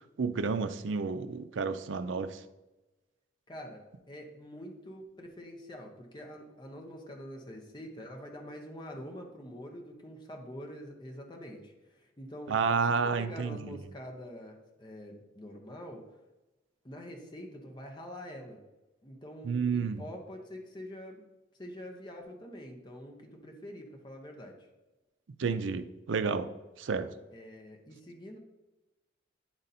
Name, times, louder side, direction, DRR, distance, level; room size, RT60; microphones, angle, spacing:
voice 1, 0.2-2.4 12.5-13.8 19.4-20.0 25.4-26.5 26.8-27.1, right 5 dB, 75° right, 11 dB, 0.5 m, -30 dB
voice 2, 3.5-12.6 13.0-16.1 16.8-18.6 19.0-21.2 21.6-24.5 27.3-28.4, equal, 25° left, 1 dB, 0.8 m, -45 dB
9.6 x 4.0 x 4.1 m, 1.1 s
head